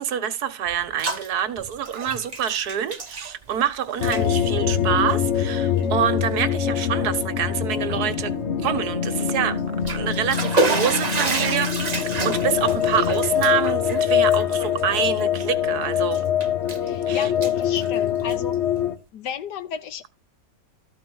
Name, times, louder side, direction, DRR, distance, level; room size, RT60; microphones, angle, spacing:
voice 1, 0.0-8.3 8.6-9.6 9.9-16.2 17.1-17.3, right 9 dB, 60° right, 1.5 m, -26 dB
Bathtub (filling or washing), 0.7-1.3 1.6-3.7 3.9-4.2 5.0-5.1 5.8-5.9 6.3-6.4 9.6-15.7 16.1-16.9 17.2-18.5, right 3 dB, 30° right, 0.9 m, -29 dB
sound 1, 4.0-18.9, left 9 dB, 50° left, 1.0 m, -24 dB
voice 2, 16.8-18.6 19.1-20.1, left 8 dB, 70° left, 1.4 m, -33 dB
13.5 x 4.7 x 6.1 m
omnidirectional pair, 2.0 m